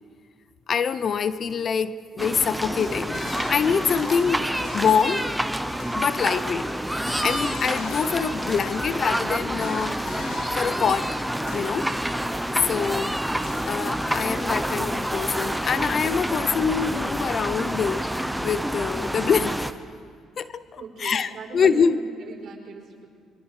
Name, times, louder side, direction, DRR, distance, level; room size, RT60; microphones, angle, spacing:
voice 1, 0.7-4.4 4.7-5.3 5.9-6.8 7.2-10.3 10.5-11.2 11.5-11.9 12.7-13.2 13.6-18.0 18.4-19.6 20.4-22.0, left 6 dB, 50° left, 14 dB, 0.8 m, -25 dB
sound 1, 2.2-19.7, right 1 dB, 5° right, 1.0 m, -28 dB
sound 2, 2.8-6.5 6.8-12.6 12.8-14.5 15.6-16.3, left 8 dB, 85° left, 1.2 m, -43 dB
voice 2, 20.8-23.1, right 5 dB, 60° right, 0 dB, 5.1 m, -40 dB
27.0 x 23.5 x 4.9 m, 2.1 s
cardioid pair, 90°, 0 cm